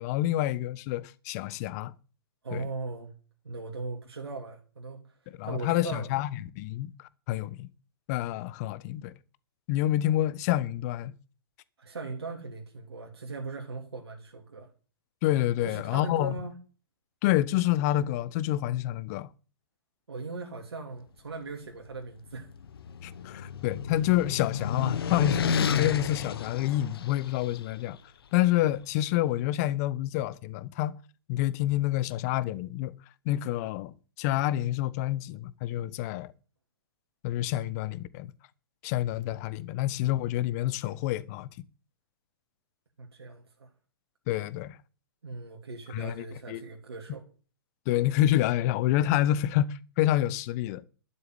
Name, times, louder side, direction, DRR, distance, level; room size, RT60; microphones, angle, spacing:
voice 1, 0.0-1.9 2.5-2.6 5.3-6.3 6.6-6.9 7.3-7.7 8.1-9.1 9.7-11.1 15.2-16.3 17.2-19.3 23.0-28.0 28.3-31.0 31.3-32.9 33.2-36.3 37.2-38.3 38.8-41.5 44.3-44.8 45.9-46.6 47.9-50.8, left 14 dB, 40° left, 1.1 m, -28 dB
voice 2, 2.4-3.1 3.4-5.2 5.4-6.1 11.8-14.7 15.6-16.5 20.1-22.5 23.3-23.5 43.0-43.7 45.2-47.2, right 3 dB, 85° right, 3.1 m, -39 dB
sound 1, 22.3-27.5, left 7 dB, 70° left, 1.4 m, -31 dB
12.5 x 6.9 x 9.3 m
hypercardioid pair, 130°, 13 cm